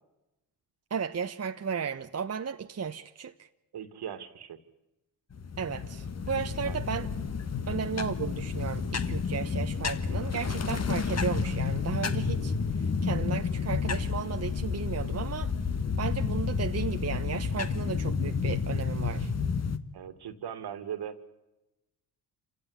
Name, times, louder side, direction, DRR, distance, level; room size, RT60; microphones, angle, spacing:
voice 1, 0.9-3.5 5.6-7.1 7.7-15.5 16.0-19.3, right 6 dB, 35° right, 1.1 m, -34 dB
voice 2, 3.7-4.6 6.7-6.8 19.9-21.2, right 9 dB, 60° right, 2.2 m, -39 dB
sound 1, 5.3-19.8, left 5 dB, 35° left, 1.6 m, -30 dB
27.0 x 16.0 x 9.7 m
supercardioid pair, 55°, 44 cm